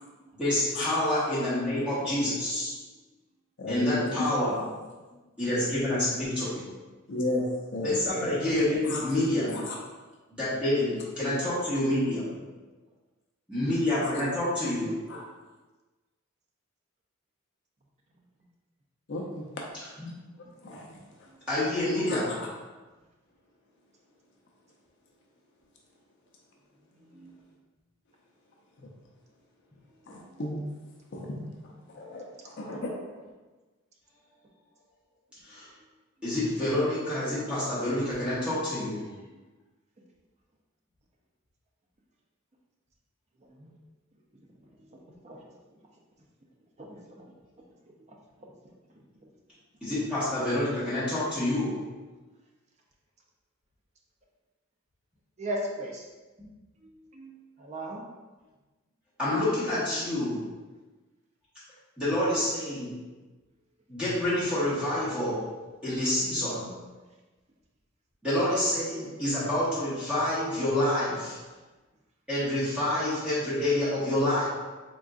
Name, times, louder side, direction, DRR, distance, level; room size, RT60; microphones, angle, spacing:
voice 1, 0.3-2.7 3.7-4.6 5.4-6.6 7.8-9.7 10.3-12.3 13.5-15.0 20.0-20.1 21.5-22.4 31.3-31.4 35.5-35.6 36.2-39.0 49.8-51.8 59.2-60.4 62.0-62.9 63.9-65.5 65.8-66.7 68.2-71.4 72.3-74.5, left 1 dB, 5° right, -12 dB, 1.2 m, -27 dB
voice 2, 3.6-4.3 7.1-7.4 7.7-8.0 8.9-9.0 9.5-9.7 14.0-14.1 15.1-15.2 19.1-19.4 20.6-20.9 22.1-22.2 28.8-28.9 30.1-30.6 31.1-33.1, left 1 dB, 55° left, -2 dB, 0.5 m, -34 dB
voice 3, 46.8-47.2 48.4-48.5 55.4-56.0 57.1-58.0 60.2-60.3, right 1 dB, 30° right, 0 dB, 0.5 m, -37 dB
3.8 x 3.5 x 2.4 m, 1.2 s
head